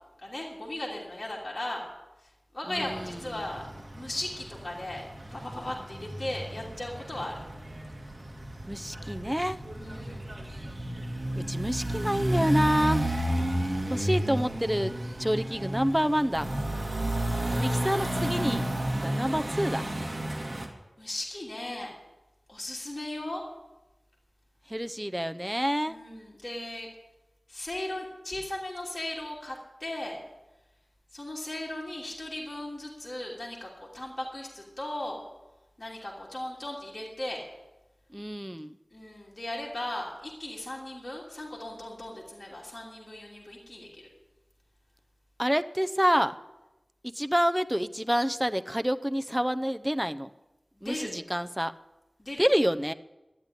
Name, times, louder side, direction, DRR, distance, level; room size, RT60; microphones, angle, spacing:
voice 1, 0.2-1.9 2.2-3.6 3.9-5.0 5.3-7.3 9.7-10.3 17.3-17.9 21.0-21.9 22.5-23.4 25.9-26.9 27.5-30.2 31.1-35.2 35.8-37.4 38.9-44.1 50.8-51.1 52.2-52.4, left 1 dB, 40° left, -3 dB, 3.1 m, -37 dB
voice 2, 2.7-3.4 8.7-9.6 11.4-13.1 13.9-14.9 15.2-16.5 17.5-18.7 19.0-19.9 24.7-26.0 38.1-38.8 45.4-46.3 47.0-50.3 50.8-51.7 52.4-52.9, equal, 5° right, 9 dB, 0.6 m, -28 dB
sound 1, 2.8-20.7, right 1 dB, 40° right, 2.2 m, -32 dB
12.5 x 9.9 x 9.8 m, 1.0 s
wide cardioid pair, 65°, 0 cm